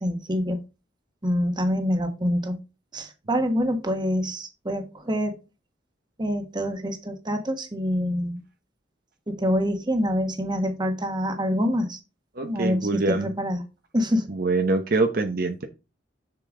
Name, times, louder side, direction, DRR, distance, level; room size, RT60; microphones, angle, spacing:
voice 1, 0.0-0.6 1.2-2.6 2.9-5.4 6.2-8.4 9.3-12.0 12.4-13.6 13.9-14.3, equal, 25° right, 1.3 m, -26 dB
voice 2, 12.4-13.3 14.3-15.7, right 3 dB, 55° right, 0.9 m, -24 dB
6.9 x 6.7 x 3.8 m
head